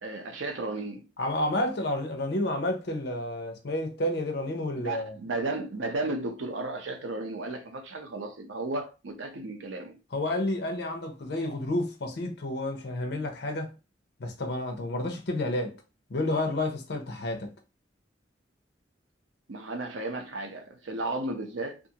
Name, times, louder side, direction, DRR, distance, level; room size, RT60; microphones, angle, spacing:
voice 1, 0.0-1.1 4.8-10.0 19.5-21.8, right 2 dB, 80° right, 0.6 m, -34 dB
voice 2, 1.2-5.1 10.1-13.7 14.2-15.8 16.1-17.5, left 1 dB, 60° left, 0.6 m, -30 dB
2.5 x 2.5 x 2.8 m
head